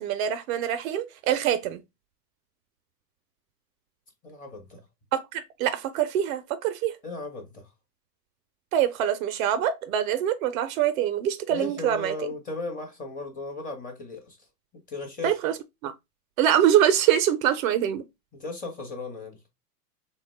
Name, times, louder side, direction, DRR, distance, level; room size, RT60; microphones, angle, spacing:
voice 1, 0.0-1.8 5.1-7.0 8.7-12.1 15.2-15.5 15.8-15.9 16.4-18.0, right 10 dB, 55° right, 0.5 m, -24 dB
voice 2, 4.2-4.8 7.0-7.7 11.5-14.4 14.9-15.4 18.3-19.4, left 2 dB, 15° left, 0.7 m, -36 dB
3.4 x 2.2 x 3.0 m
hypercardioid pair, 125°, 49 cm